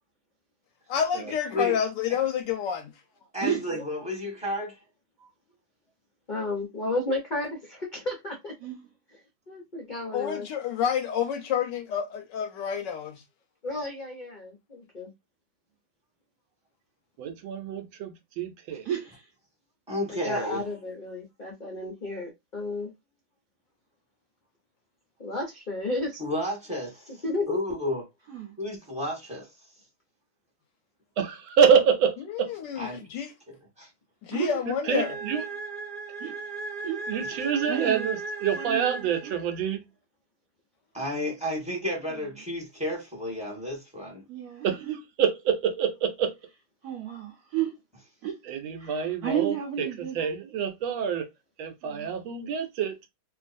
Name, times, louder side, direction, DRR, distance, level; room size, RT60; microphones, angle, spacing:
voice 1, 0.9-2.9 10.1-13.2 32.2-33.3 34.2-35.2, left 8 dB, 75° left, 1.1 m, -29 dB
voice 2, 3.3-4.8 19.9-20.6 26.2-28.0 28.6-29.5 32.8-33.0 33.5-33.9 37.3-37.4 40.9-44.2, left 1 dB, 5° right, 1.0 m, -32 dB
voice 3, 6.3-8.5 9.5-10.5 13.6-15.1 20.1-22.9 25.2-26.2 27.2-27.6, left 2 dB, 55° left, 0.5 m, -32 dB
voice 4, 17.2-18.8 31.2-32.5 34.7-35.4 37.1-39.9 44.6-44.8 45.2-46.3 48.5-49.9 50.2-51.3 51.6-52.9, right 7 dB, 80° right, 1.4 m, -26 dB
voice 5, 18.8-19.3 28.3-28.5 34.3-34.6 36.2-36.3 36.8-37.0 37.7-38.1 38.6-39.3 44.3-45.0 46.8-47.7 48.2-48.4 48.8-50.2 51.8-52.1, right 9 dB, 65° right, 1.1 m, -32 dB
sound 1, 34.8-39.7, right 3 dB, 20° right, 0.6 m, -36 dB
3.1 x 2.5 x 2.5 m
omnidirectional pair, 2.1 m